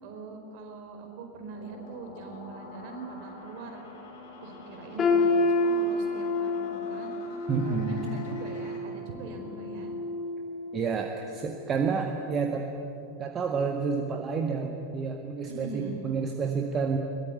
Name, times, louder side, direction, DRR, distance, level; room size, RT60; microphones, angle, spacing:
voice 1, 0.0-3.8 4.4-7.1 7.6-9.9 15.5-16.0, right 3 dB, 45° right, 4 dB, 4.5 m, -41 dB
sound 1, 1.5-8.8, left 3 dB, 50° left, 4.8 m, -47 dB
sound 2, 5.0-10.9 11.3-11.6 12.3-12.4, left 2 dB, 25° left, 3.5 m, -29 dB
voice 2, 7.5-8.0 10.7-12.8 13.2-17.0, right 5 dB, 25° right, 3 dB, 1.7 m, -29 dB
22.5 x 21.0 x 9.7 m, 2.7 s
figure-of-eight pair, 90°, 0 cm